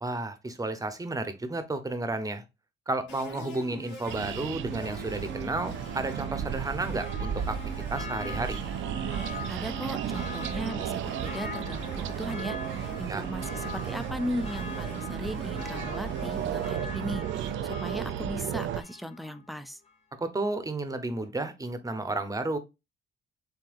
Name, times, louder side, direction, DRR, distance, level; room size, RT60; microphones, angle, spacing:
voice 1, 0.0-2.4 2.9-7.6 7.9-8.6 13.1-13.3 20.2-22.6, right 2 dB, 15° right, 0.9 m, -32 dB
sound 1, 3.1-16.7, right 1 dB, 70° left, 2.2 m, -44 dB
sound 2, 4.1-18.8, right 9 dB, 75° right, 0.5 m, -34 dB
Church bell, 5.8-19.5 19.9-20.0, left 5 dB, 30° left, 1.2 m, -44 dB
voice 2, 9.5-19.8, equal, ahead, 0.5 m, -37 dB
7.5 x 2.7 x 2.5 m
cardioid pair, 90°, 20 cm